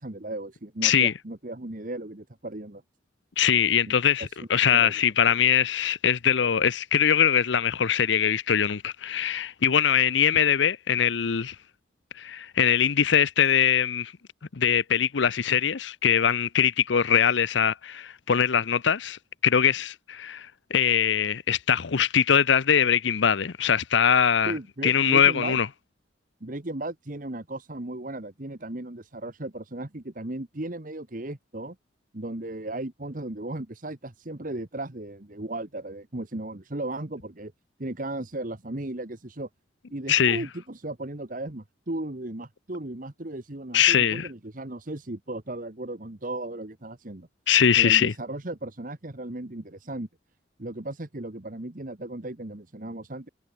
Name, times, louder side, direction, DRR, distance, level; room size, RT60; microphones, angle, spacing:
voice 1, 0.0-2.8 3.9-4.0 4.7-5.0 24.4-25.6 26.4-31.8 32.1-37.5 37.8-39.5 39.9-47.3 47.8-50.1 50.6-53.3, right 1 dB, 45° right, 1.4 m, -36 dB
voice 2, 0.8-1.1 3.4-11.6 12.2-14.1 14.6-24.5 24.8-25.7 40.1-40.4 43.7-44.3 47.5-48.1, left 8 dB, 70° left, 0.7 m, -22 dB
head